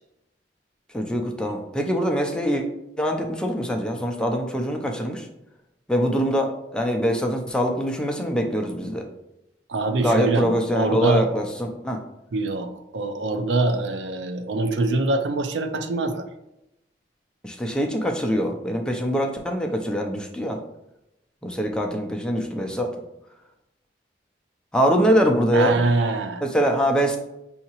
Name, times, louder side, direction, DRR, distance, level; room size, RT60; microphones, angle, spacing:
voice 1, 0.9-2.6 3.0-5.3 5.9-9.0 10.0-12.0 17.4-20.6 21.4-22.9 24.7-25.8 26.4-27.2, equal, 5° left, 2 dB, 0.4 m, -23 dB
voice 2, 9.7-11.3 12.3-16.2 25.5-26.4, right 2 dB, 85° right, 8 dB, 0.5 m, -24 dB
5.6 x 2.8 x 2.9 m, 0.90 s
head